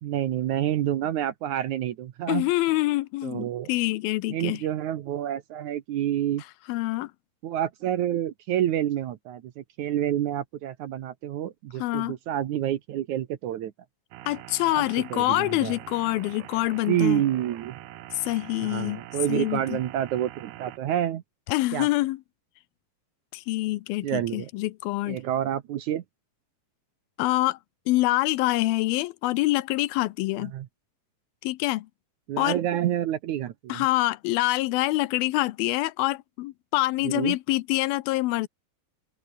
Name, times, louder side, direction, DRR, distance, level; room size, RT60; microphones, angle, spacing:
voice 1, 0.0-2.5 3.2-3.7 4.3-6.4 7.4-13.7 14.7-14.8 15.1-15.8 16.9-17.8 18.6-21.2 21.7-21.9 24.0-24.5 25.1-26.0 30.4-30.7 32.3-33.8 37.0-37.4, right 11 dB, 65° right, 2.2 m, -28 dB
voice 2, 2.3-4.6 6.7-7.1 11.8-12.2 14.3-17.2 18.1-19.0 19.3-19.8 21.5-22.2 23.3-25.2 27.2-27.6 27.9-30.5 31.4-31.9 32.4-32.6 33.7-38.5, left 18 dB, 80° left, 2.6 m, -26 dB
sound 1, 14.1-20.8, right 15 dB, 85° right, 3.0 m, -44 dB
open air
omnidirectional pair, 4.3 m